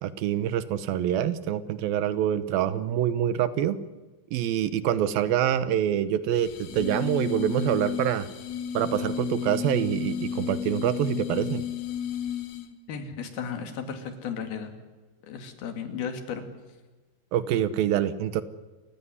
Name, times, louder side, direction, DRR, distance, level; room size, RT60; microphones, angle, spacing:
voice 1, 0.0-3.8 4.3-8.3 8.7-11.6 17.3-18.4, right 10 dB, 75° right, 14 dB, 2.7 m, -26 dB
sound 1, 6.3-12.8, left 8 dB, 55° left, 2.5 m, -33 dB
voice 2, 12.9-14.7 15.2-16.4, left 6 dB, 80° left, 7 dB, 4.2 m, -34 dB
28.0 x 15.5 x 9.8 m, 1.2 s
omnidirectional pair, 4.3 m